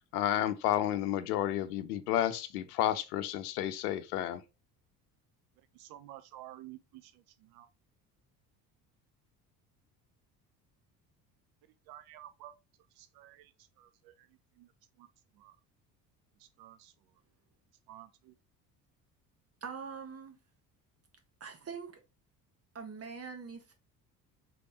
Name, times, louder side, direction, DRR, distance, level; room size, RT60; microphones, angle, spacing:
voice 1, 0.1-4.4, left 12 dB, 75° left, 0.6 m, -31 dB
voice 2, 5.7-7.7 11.9-12.5 12.9-14.3 14.6-14.7 15.0-15.1 15.4-15.6 16.4-16.9 17.9-18.3, right 14 dB, 55° right, 0.5 m, -52 dB
voice 3, 19.6-20.4 21.4-22.0 22.7-23.7, right 5 dB, 30° right, 1.3 m, -43 dB
3.8 x 3.4 x 2.7 m
hypercardioid pair, 60°, 47 cm